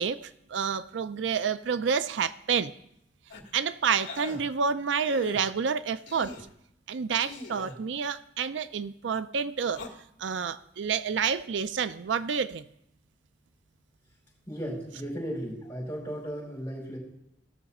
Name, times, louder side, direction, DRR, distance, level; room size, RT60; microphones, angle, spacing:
voice 1, 0.0-2.7 3.5-6.4 6.9-9.8 10.2-12.6, right 6 dB, 85° right, 14 dB, 0.5 m, -29 dB
sound 1, 3.3-3.5 4.0-4.4 5.0-5.4 6.1-6.5 7.2-7.8 9.7-9.9, left 3 dB, 80° left, 1.8 m, -41 dB
voice 2, 14.5-17.0, equal, 10° left, -5 dB, 5.1 m, -35 dB
16.5 x 6.7 x 4.2 m, 0.76 s
head